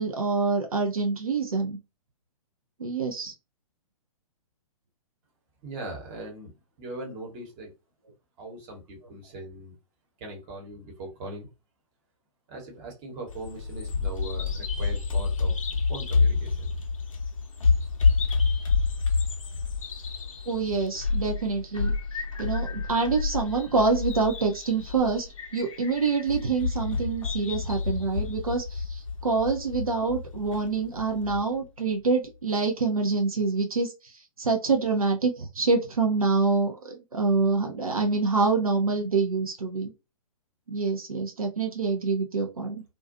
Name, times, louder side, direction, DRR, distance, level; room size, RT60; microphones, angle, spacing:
voice 1, 0.0-1.8 2.8-3.3 20.5-21.9 22.4-25.3 25.5-39.9 40.7-42.8, right 4 dB, 75° right, 2 dB, 0.6 m, -26 dB
voice 2, 5.6-6.5 6.8-7.7 8.4-9.7 10.2-11.5 12.5-15.6 15.9-16.7, right 2 dB, 25° right, 1 dB, 1.0 m, -40 dB
Bird vocalization bird call bird song, 13.3-31.4, left 4 dB, 65° left, 0.7 m, -28 dB
2.5 x 2.3 x 2.6 m, 0.28 s
figure-of-eight pair, 115°, 18 cm